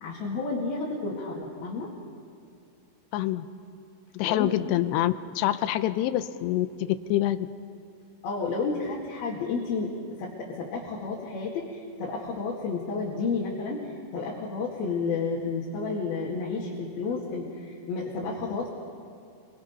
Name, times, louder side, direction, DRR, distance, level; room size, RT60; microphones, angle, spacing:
voice 1, 0.0-1.9 4.2-4.6 8.2-9.9 10.2-18.7, left 4 dB, 65° left, -5 dB, 4.0 m, -31 dB
voice 2, 3.1-3.5 4.1-7.5, left 13 dB, 80° left, 12 dB, 2.8 m, -26 dB
27.0 x 23.0 x 5.5 m, 2.5 s
omnidirectional pair, 5.0 m